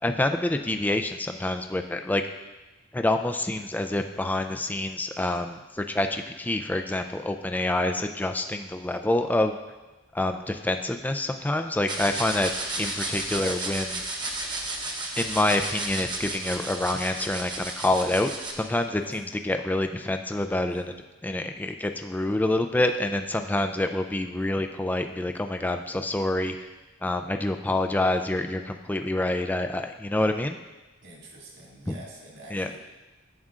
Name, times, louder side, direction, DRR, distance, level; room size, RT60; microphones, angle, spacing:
voice 1, 0.0-2.2 2.9-9.6 10.1-14.0 15.2-21.0 21.2-26.6 27.0-30.6 31.9-32.0 32.5-32.7, left 1 dB, 10° left, 6 dB, 0.3 m, -27 dB
sound 1, 11.9-18.5, right 2 dB, 20° right, 0.8 m, -33 dB
voice 2, 31.0-32.8, right 1 dB, 55° right, -3 dB, 2.1 m, -46 dB
11.0 x 7.6 x 2.4 m, 1.1 s
head